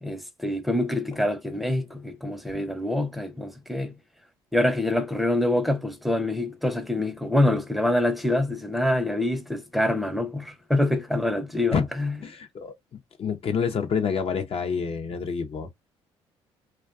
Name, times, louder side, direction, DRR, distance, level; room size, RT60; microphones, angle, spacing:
voice 1, 0.0-3.9 4.5-12.1, left 1 dB, ahead, 0.6 m, -25 dB
voice 2, 12.2-15.7, left 6 dB, 45° left, 0.6 m, -28 dB
2.5 x 2.2 x 2.4 m
hypercardioid pair, 55°, 14 cm